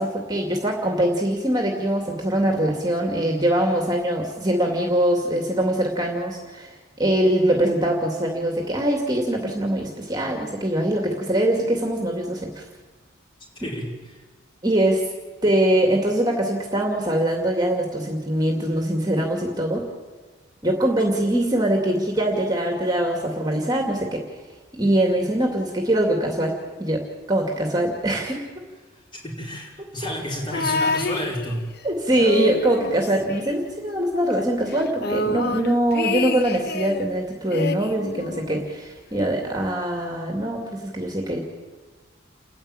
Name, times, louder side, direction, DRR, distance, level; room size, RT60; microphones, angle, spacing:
voice 1, 0.0-12.6 14.6-15.1 15.4-19.9 20.6-24.2 24.7-28.5 31.8-41.4, right 1 dB, 20° right, 1 dB, 2.4 m, -23 dB
voice 2, 13.6-14.2 29.1-31.6, equal, 25° left, -2 dB, 5.0 m, -30 dB
sound 1, 30.5-31.8 32.1-34.0 34.3-34.4 34.7-37.1 37.5-38.8 39.6-39.7, left 2 dB, 50° left, 1.0 m, -28 dB
29.5 x 11.0 x 9.0 m, 1.3 s
head